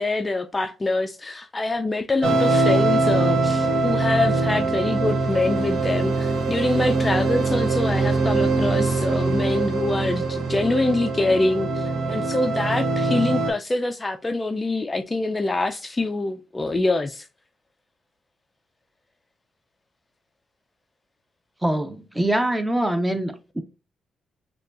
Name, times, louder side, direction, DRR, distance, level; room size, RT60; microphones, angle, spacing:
voice 1, 0.0-17.3, left 2 dB, 25° left, 0.3 m, -25 dB
sound 1, 2.2-13.5, right 3 dB, 75° right, 0.9 m, -22 dB
voice 2, 21.6-23.6, right 1 dB, 10° right, 0.6 m, -24 dB
6.3 x 2.3 x 2.4 m
cardioid pair, 80°, 0 cm